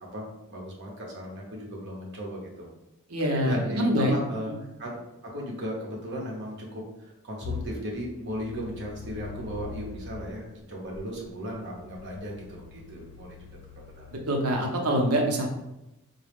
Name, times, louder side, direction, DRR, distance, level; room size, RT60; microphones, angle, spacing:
voice 1, 0.1-2.7 3.4-4.5 4.8-13.4 13.9-14.1, equal, 55° right, -2 dB, 1.0 m, -36 dB
voice 2, 3.1-4.1 14.1-15.5, equal, 90° right, 1 dB, 0.7 m, -25 dB
sound 1, 7.4-10.3 10.9-14.1, left 5 dB, 85° left, 0.6 m, -42 dB
3.8 x 2.2 x 3.5 m, 0.93 s
head